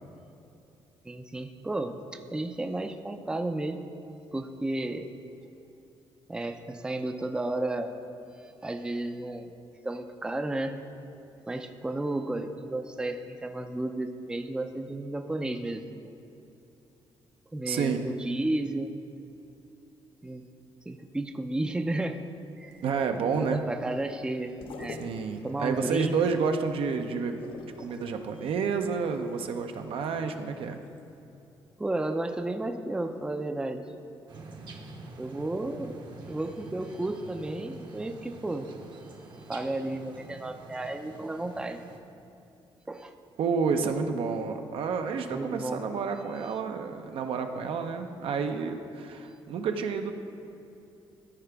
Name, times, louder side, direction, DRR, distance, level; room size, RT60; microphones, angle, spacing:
voice 1, 1.0-3.8 4.3-5.1 6.3-7.9 8.6-9.5 9.8-10.8 11.5-15.8 17.5-18.9 20.2-20.4 20.9-22.2 22.6-22.8 23.3-25.1 25.4-26.1 27.9-28.0 31.8-33.8 35.2-36.0 36.3-38.7 39.5-41.8 42.9-43.1 45.3-45.8, right 2 dB, 10° right, 6 dB, 0.4 m, -33 dB
voice 2, 17.7-18.0 22.8-23.6 25.0-27.4 27.8-30.8 43.4-50.1, right 5 dB, 70° right, 6 dB, 0.6 m, -30 dB
sound 1, 22.7-30.6 31.0-31.1, left 4 dB, 65° left, 0.6 m, -48 dB
sound 2, 34.3-42.0, right 3 dB, 50° right, 0.9 m, -46 dB
13.5 x 4.7 x 3.4 m, 2.8 s
cardioid pair, 95°, 10 cm